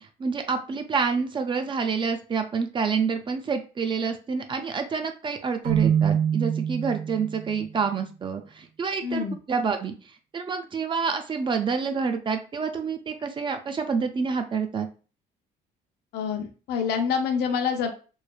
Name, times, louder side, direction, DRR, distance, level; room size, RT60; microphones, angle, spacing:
voice 1, 0.0-9.9 10.3-14.9, right 5 dB, 30° right, 6 dB, 0.4 m, -28 dB
Keyboard (musical), 5.6-7.5, right 8 dB, 55° right, 0.9 m, -24 dB
voice 2, 9.0-9.4 16.1-17.9, left 6 dB, 75° left, 5 dB, 0.5 m, -26 dB
3.1 x 2.0 x 2.3 m, 0.35 s
cardioid pair, 110°, 17 cm